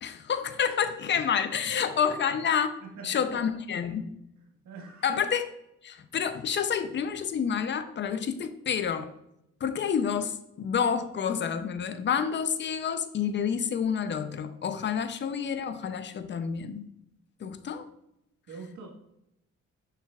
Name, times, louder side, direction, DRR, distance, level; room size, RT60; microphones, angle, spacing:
voice 1, 0.0-2.7 3.0-4.2 5.0-5.5 5.8-9.1 9.6-16.9 17.4-17.9, left 7 dB, 40° left, 10 dB, 0.6 m, -29 dB
voice 2, 2.8-3.6 4.6-5.2 14.9-15.0 18.5-18.9, right 4 dB, 70° right, 0 dB, 1.6 m, -44 dB
6.6 x 6.2 x 2.4 m, 0.82 s
cardioid pair, 90°, 30 cm